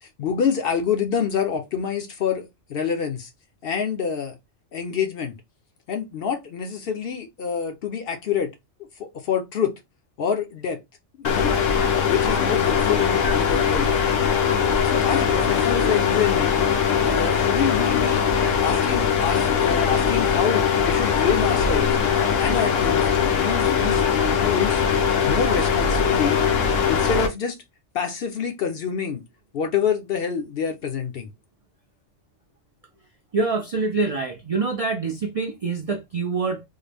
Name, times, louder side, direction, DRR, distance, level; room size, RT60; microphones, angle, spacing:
voice 1, 0.0-3.3 3.6-4.4 4.7-5.4 5.9-8.5 9.0-9.7 10.2-10.8 11.1-11.5 12.1-14.1 14.8-16.6 17.0-18.3 18.6-22.0 22.4-24.1 24.4-24.8 25.2-26.4 26.9-27.6 27.9-29.2 29.5-31.3, left 7 dB, 60° left, 0.7 m, -26 dB
sound 1, 11.2-27.3, left 7 dB, 90° left, 1.1 m, -21 dB
voice 2, 33.3-36.6, right 4 dB, 55° right, 0.3 m, -25 dB
3.6 x 2.0 x 3.3 m
omnidirectional pair, 1.3 m